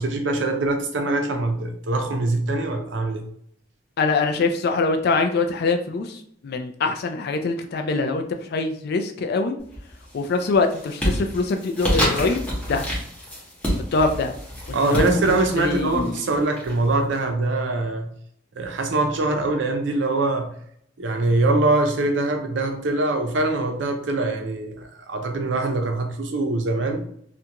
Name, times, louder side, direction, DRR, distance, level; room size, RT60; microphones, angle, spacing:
voice 1, 0.0-3.2 14.7-18.1 18.6-20.5 21.0-27.0, right 2 dB, 70° right, 0.5 m, -23 dB
voice 2, 4.0-6.2 6.4-9.5 10.1-12.4 12.7-12.8 13.9-14.3 14.7-15.2 15.6-16.3, left 3 dB, 55° left, 0.4 m, -23 dB
sound 1, 9.6-10.1 10.5-17.1, equal, 5° left, 0.8 m, -28 dB
2.4 x 2.2 x 2.8 m
head